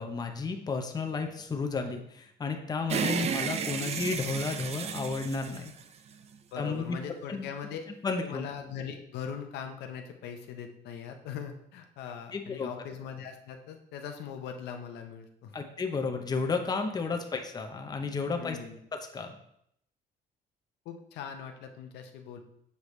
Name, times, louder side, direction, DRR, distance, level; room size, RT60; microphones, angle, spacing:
voice 1, 0.0-5.7 6.6-7.0 7.3-7.5 8.0-8.5 12.3-12.7 15.5-18.6 19.1-19.4, left 4 dB, 25° left, 4 dB, 0.7 m, -32 dB
sound 1, 2.9-6.4, right 6 dB, 40° right, 0.4 m, -33 dB
voice 2, 3.1-3.4 6.5-7.8 8.2-15.5 18.4-18.8 20.8-22.4, left 7 dB, 80° left, 5 dB, 0.7 m, -41 dB
6.8 x 4.7 x 3.2 m, 0.74 s
cardioid pair, 110°, 17 cm